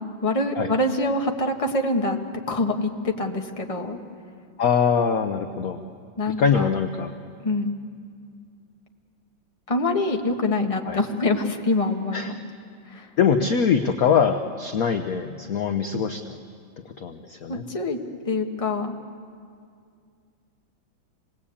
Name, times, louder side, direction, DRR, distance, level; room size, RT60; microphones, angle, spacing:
voice 1, 0.0-2.2 2.5-4.0 6.2-6.7 7.4-7.8 9.7-12.4 12.9-13.1 17.5-18.0 18.3-19.0, left 2 dB, 20° left, 2 dB, 1.3 m, -25 dB
voice 2, 4.6-5.8 6.4-7.1 10.9-11.0 12.1-12.3 13.2-16.2 17.0-17.6, left 6 dB, 55° left, 7 dB, 1.1 m, -22 dB
27.5 x 19.5 x 8.6 m, 2.3 s
omnidirectional pair, 2.2 m